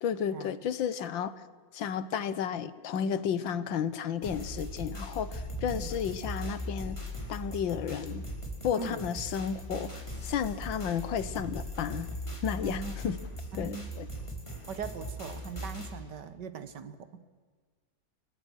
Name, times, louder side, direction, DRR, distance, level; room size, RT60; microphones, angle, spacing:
voice 1, 0.0-1.3 1.7-7.0 7.3-8.2 8.6-12.1 12.4-13.2 13.6-14.1, left 8 dB, 80° left, 15 dB, 1.8 m, -32 dB
sound 1, 4.2-15.9, equal, 15° left, 4.1 m, -39 dB
voice 2, 8.8-9.1 12.6-13.0 13.5-13.9 14.7-17.1, right 6 dB, 65° right, 13 dB, 1.9 m, -40 dB
29.0 x 21.5 x 6.4 m, 1.5 s
omnidirectional pair, 2.0 m